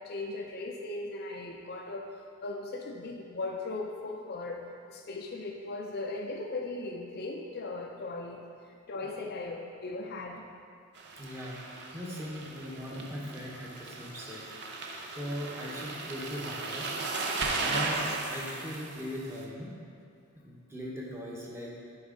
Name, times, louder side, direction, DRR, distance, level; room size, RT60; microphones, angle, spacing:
voice 1, 0.0-2.1 2.4-4.6 4.9-10.5 17.3-17.9, left 2 dB, 45° left, 1 dB, 0.5 m, -38 dB
sound 1, 11.0-19.4, right 3 dB, 50° right, 0.7 m, -36 dB
voice 2, 11.2-14.4 15.2-16.9 17.6-19.8 20.4-21.7, equal, 10° right, -4 dB, 0.9 m, -39 dB
8.6 x 4.8 x 3.7 m, 2.3 s
head